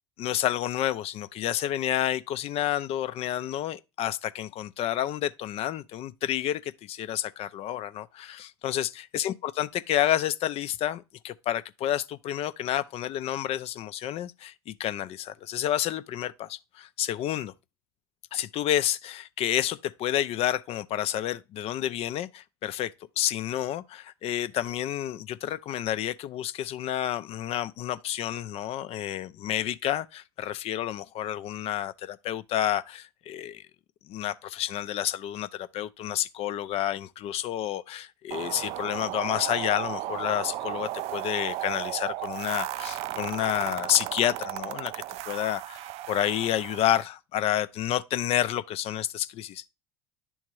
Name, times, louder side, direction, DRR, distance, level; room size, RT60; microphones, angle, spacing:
voice 1, 0.2-17.5 18.3-33.6 34.1-49.7, left 12 dB, 50° left, 0.5 m, -30 dB
sound 1, 38.3-47.0, right 15 dB, 55° right, 0.4 m, -35 dB
10.5 x 3.6 x 3.1 m
hypercardioid pair, 75°, 13 cm